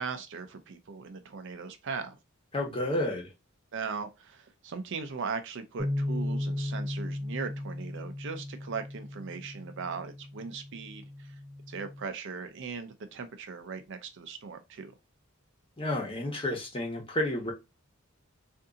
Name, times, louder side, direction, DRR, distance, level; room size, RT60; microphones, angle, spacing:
voice 1, 0.0-2.2 3.7-11.4 11.7-14.9, right 5 dB, 60° right, 0.5 m, -39 dB
voice 2, 2.5-3.3 15.8-17.5, left 1 dB, 25° left, 1.1 m, -31 dB
sound 1, 5.8-12.0, left 1 dB, 10° right, 0.5 m, -36 dB
2.7 x 2.6 x 3.6 m
head